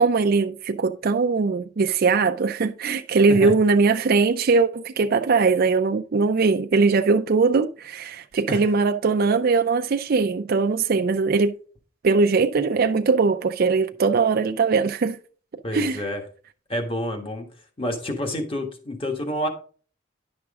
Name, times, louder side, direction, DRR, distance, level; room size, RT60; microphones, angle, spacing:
voice 1, 0.0-11.5 12.0-15.2 15.7-16.0, right 4 dB, 50° right, 0.4 m, -20 dB
voice 2, 15.6-16.2 16.7-17.5 17.8-19.5, left 1 dB, 30° left, 1.5 m, -28 dB
10.5 x 6.1 x 3.6 m
head